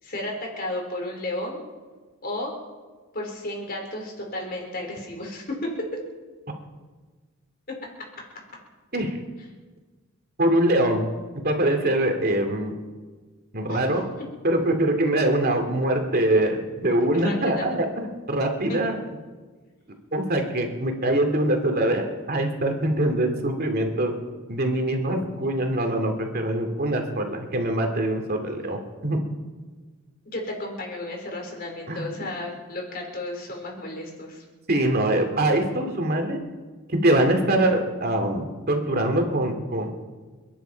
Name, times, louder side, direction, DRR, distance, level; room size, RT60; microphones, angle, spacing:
voice 1, 0.0-1.6 2.2-2.5 3.1-5.9 7.7-7.8 13.7-13.9 17.1-17.7 30.3-34.4, left 1 dB, 45° left, 0 dB, 4.4 m, -33 dB
voice 2, 10.4-11.1 11.3-12.7 13.5-14.0 14.4-19.0 20.1-24.1 24.5-29.2 31.9-32.1 34.7-36.4 36.9-40.0, right 1 dB, 45° right, 4 dB, 2.5 m, -23 dB
30.0 x 10.5 x 4.6 m, 1.4 s
head